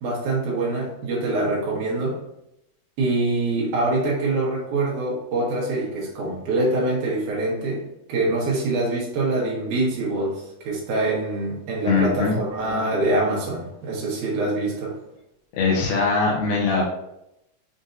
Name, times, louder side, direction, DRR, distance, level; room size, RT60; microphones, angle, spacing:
voice 1, 0.0-2.2 3.0-7.8 8.1-15.0, right 2 dB, 75° right, -4 dB, 2.3 m, -24 dB
voice 2, 11.9-12.4 15.5-16.8, left 4 dB, 80° left, -3 dB, 2.3 m, -21 dB
6.4 x 2.6 x 2.5 m, 0.83 s
omnidirectional pair, 3.7 m